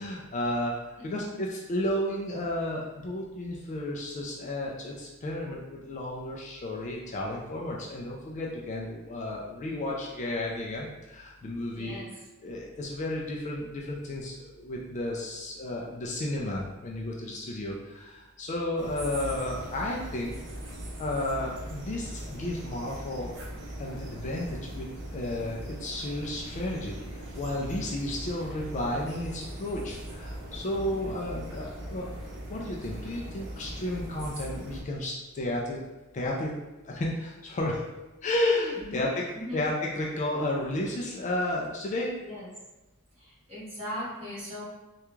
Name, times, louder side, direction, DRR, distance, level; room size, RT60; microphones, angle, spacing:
voice 1, 0.0-12.0 12.4-20.3 21.0-23.3 23.8-27.0 27.4-32.1 32.5-35.8 36.1-36.5 36.9-37.8 38.2-39.2 39.5-42.1, left 1 dB, 35° left, -2 dB, 0.4 m, -32 dB
voice 2, 11.7-12.1 30.9-31.2 38.7-39.0 39.3-39.6 42.2-42.5 43.1-44.6, left 1 dB, 30° right, -9 dB, 1.5 m, -39 dB
sound 1, 18.8-34.8, right 1 dB, 55° right, 0.7 m, -40 dB
3.3 x 2.3 x 3.0 m, 1.1 s
head